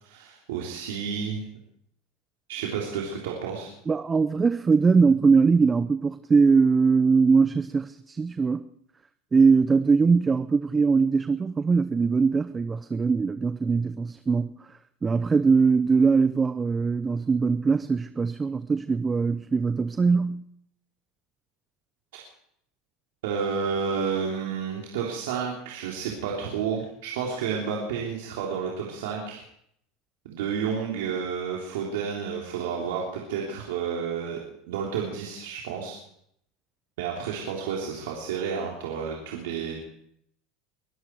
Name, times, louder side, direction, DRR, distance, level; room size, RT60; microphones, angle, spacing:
voice 1, 0.0-1.5 2.5-3.7 22.1-22.2 23.2-29.4 30.3-34.4 34.7-36.0 37.0-39.8, right 6 dB, 80° right, 3.5 m, -31 dB
voice 2, 3.9-8.7 9.3-14.6 15.0-20.4, right 5 dB, 20° right, 0.7 m, -21 dB
23.0 x 13.0 x 4.7 m
supercardioid pair, 110°, 0 cm